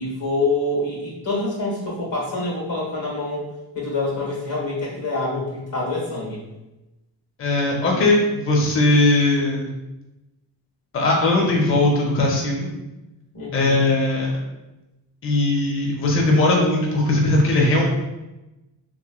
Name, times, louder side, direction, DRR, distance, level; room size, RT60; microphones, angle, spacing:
voice 1, 0.0-3.4 3.7-6.4 13.3-13.8, left 2 dB, 80° left, -3 dB, 1.4 m, -26 dB
voice 2, 7.4-9.7 10.9-12.7 13.5-14.3 15.2-17.8, left 2 dB, 30° left, -1 dB, 0.6 m, -19 dB
3.2 x 3.1 x 2.3 m, 1.0 s
cardioid pair, 100°, 44 cm